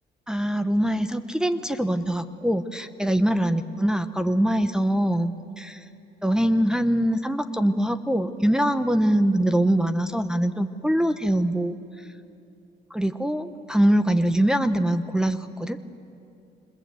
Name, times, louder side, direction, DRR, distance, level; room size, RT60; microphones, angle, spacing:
voice 1, 0.3-5.8 6.2-12.1 12.9-15.8, right 1 dB, 5° right, 7 dB, 0.9 m, -23 dB
28.0 x 26.5 x 7.8 m, 2.6 s
cardioid pair, 115°, 18 cm